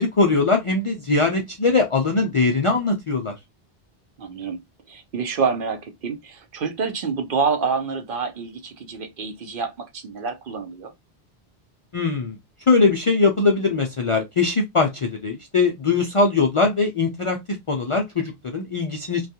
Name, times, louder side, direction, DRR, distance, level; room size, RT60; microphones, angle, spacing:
voice 1, 0.0-3.3 11.9-12.4 12.7-19.2, left 3 dB, 50° left, 0.4 m, -21 dB
voice 2, 4.2-4.6 4.9-10.9, right 5 dB, 60° right, 0.8 m, -27 dB
2.3 x 2.2 x 2.7 m
omnidirectional pair, 1.0 m